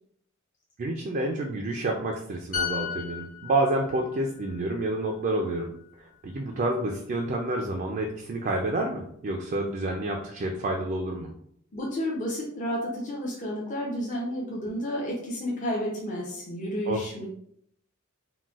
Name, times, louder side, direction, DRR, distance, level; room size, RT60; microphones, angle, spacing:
voice 1, 0.8-5.7 6.0-11.3 16.9-17.3, right 2 dB, 40° right, 1 dB, 0.3 m, -29 dB
sound 1, 2.5-6.1 6.5-6.7, left 8 dB, 70° left, 0.9 m, -36 dB
voice 2, 11.7-17.3, equal, 35° left, -4 dB, 0.6 m, -31 dB
3.9 x 2.1 x 2.4 m, 0.69 s
head